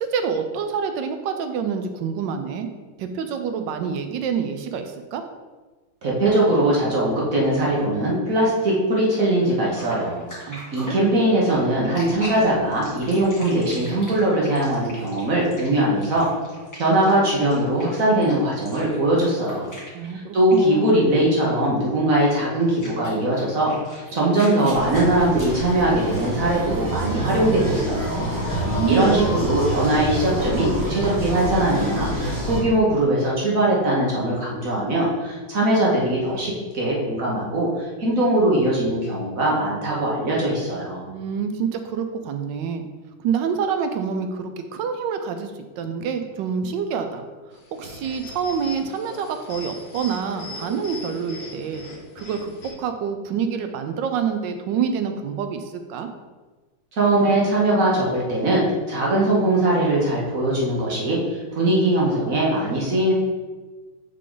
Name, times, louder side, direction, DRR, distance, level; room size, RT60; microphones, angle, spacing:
voice 1, 0.0-2.7 3.0-5.2 10.5-11.0 19.9-21.1 28.4-29.2 41.1-42.8 43.2-47.2 47.7-51.8 52.2-56.1, right 6 dB, 75° right, 7 dB, 1.2 m, -27 dB
voice 2, 6.0-10.2 10.7-16.3 16.8-19.7 20.3-23.7 24.1-28.3 28.9-41.0 57.0-58.6 58.9-63.1, right 1 dB, 50° right, -4 dB, 1.4 m, -21 dB
sound 1, 9.7-20.3 20.5-20.8 22.2-22.3 22.7-26.4, equal, 10° left, 1.7 m, -41 dB
sound 2, 24.7-32.6, right 1 dB, 15° right, 0.7 m, -27 dB
sound 3, 47.5-52.7, left 2 dB, 55° left, 1.6 m, -39 dB
6.5 x 3.8 x 3.8 m, 1.3 s
omnidirectional pair, 2.0 m